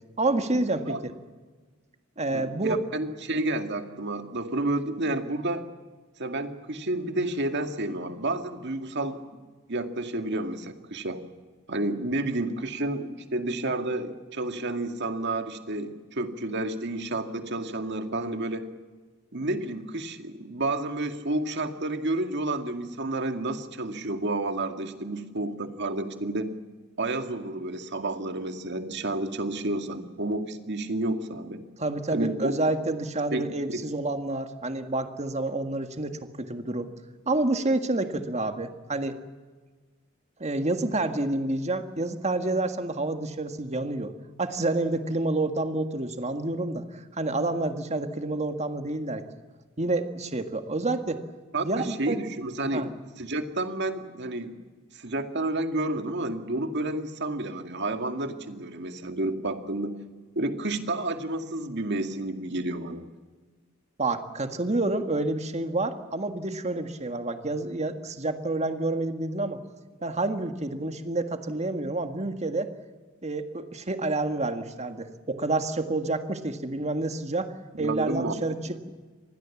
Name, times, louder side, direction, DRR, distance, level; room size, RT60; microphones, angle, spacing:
voice 1, 0.2-1.1 2.2-2.8 31.8-36.9 37.2-39.2 40.4-44.1 44.4-49.2 49.8-51.2 51.6-52.2 52.7-52.9 64.0-69.6 70.0-72.7 73.2-77.5 77.8-78.5, right 2 dB, 35° right, 7 dB, 1.8 m, -28 dB
voice 2, 2.3-5.6 6.2-9.2 9.7-11.2 11.7-18.6 19.3-26.5 27.0-31.6 32.1-32.5 33.3-33.8 51.5-52.8 53.2-54.6 54.9-60.0 60.4-63.1 77.8-78.3, right 2 dB, 60° right, 6 dB, 2.1 m, -30 dB
25.5 x 20.0 x 7.3 m, 1.4 s
head